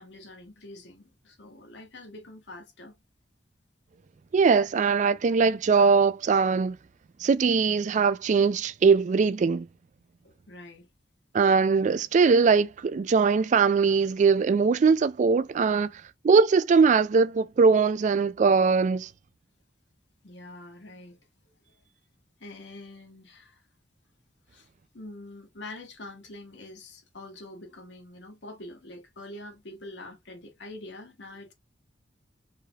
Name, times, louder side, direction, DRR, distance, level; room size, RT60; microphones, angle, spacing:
voice 1, 0.0-2.9 10.5-10.9 15.8-15.9 20.2-21.2 22.4-23.6 24.5-24.7 24.9-31.5, left 2 dB, 80° left, 1.5 m, -45 dB
voice 2, 4.3-6.8 7.2-9.7 11.3-15.9 16.2-19.1, right 5 dB, 45° right, 0.3 m, -21 dB
4.8 x 2.9 x 2.3 m
head